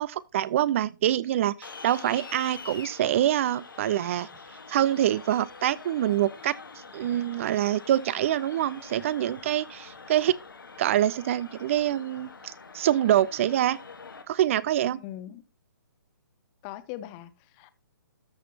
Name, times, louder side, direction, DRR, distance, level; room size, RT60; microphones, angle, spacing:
voice 1, 0.0-4.3 4.7-6.5 6.9-10.4 10.8-13.8 14.3-15.0, right 12 dB, 35° right, 0.5 m, -25 dB
sound 1, 1.6-14.2, left 4 dB, 75° left, 1.4 m, -45 dB
voice 2, 14.9-15.4 16.6-17.7, left 13 dB, 25° left, 0.7 m, -40 dB
13.5 x 5.9 x 2.8 m
figure-of-eight pair, 130°, 11 cm